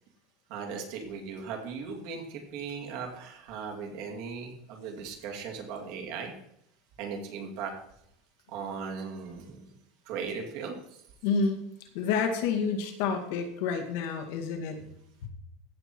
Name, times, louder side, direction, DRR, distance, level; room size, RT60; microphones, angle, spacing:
voice 1, 0.5-6.3 7.0-7.7 8.5-9.6 10.1-11.0 11.3-11.4, right 5 dB, 55° right, 2 dB, 2.5 m, -38 dB
voice 2, 11.2-11.6 11.9-14.8 15.2-15.3, left 5 dB, 65° left, 3 dB, 2.0 m, -29 dB
15.5 x 7.0 x 4.6 m, 0.75 s
supercardioid pair, 175°, 0 cm